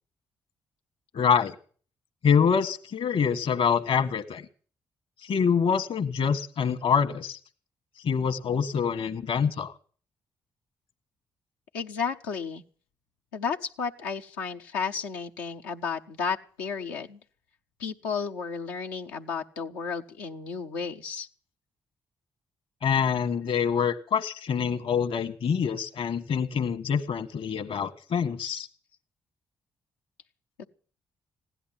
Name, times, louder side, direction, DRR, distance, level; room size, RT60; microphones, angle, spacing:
voice 1, 1.1-1.5 2.2-4.4 5.2-7.4 8.0-9.7 22.8-28.7, left 6 dB, 65° left, 10 dB, 1.6 m, -25 dB
voice 2, 11.7-12.6 13.3-17.2 17.8-21.3 30.6-30.7, left 6 dB, 90° left, 2 dB, 0.8 m, -33 dB
16.0 x 11.0 x 7.6 m, 0.43 s
hypercardioid pair, 40°, 10 cm